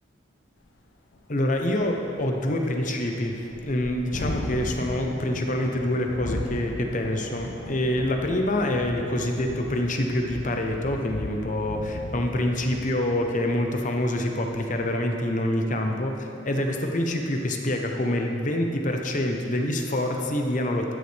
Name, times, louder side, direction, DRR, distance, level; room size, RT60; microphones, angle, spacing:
Thunderstorm, 0.7-0.8 1.1-1.2 1.5-15.1, left 1 dB, 80° left, 0.9 m, -37 dB
voice 1, 1.3-20.9, left 1 dB, 45° left, 3 dB, 0.9 m, -26 dB
12.5 x 9.8 x 3.5 m, 2.7 s
head